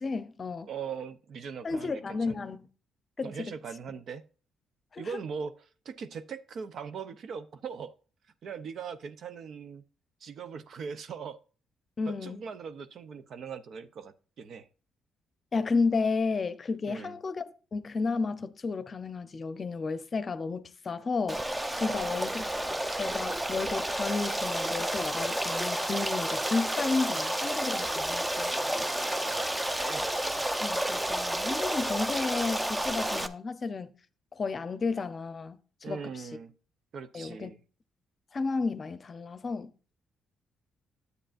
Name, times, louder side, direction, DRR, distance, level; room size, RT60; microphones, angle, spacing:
voice 1, 0.0-0.7 1.6-2.7 3.2-3.5 4.9-5.1 12.0-12.5 15.5-21.4 21.8-22.4 23.0-28.5 30.6-33.9 34.3-35.6 35.9-36.3 37.1-37.5 38.3-39.7, left 4 dB, 40° left, 0.7 m, -32 dB
voice 2, 0.7-2.5 3.2-4.2 5.0-5.5 5.8-7.9 8.4-9.8 10.2-11.4 12.1-14.7 16.9-17.2 21.9-22.2 29.2-30.1 35.8-36.5 36.9-37.6, right 6 dB, 60° right, 0.7 m, -40 dB
Stream, 21.3-33.3, right 1 dB, 10° right, 0.7 m, -31 dB
10.0 x 8.1 x 2.6 m
cardioid pair, 90°, 0 cm